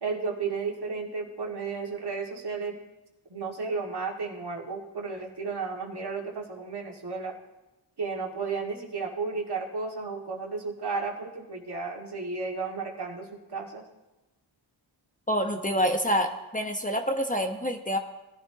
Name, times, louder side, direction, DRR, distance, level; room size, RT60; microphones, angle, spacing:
voice 1, 0.0-2.8 3.3-7.3 8.0-13.8, right 4 dB, 55° right, 0 dB, 2.2 m, -33 dB
voice 2, 15.3-18.0, equal, 15° left, 4 dB, 1.1 m, -27 dB
18.5 x 11.0 x 2.9 m, 1.0 s
cardioid pair, 50°, 47 cm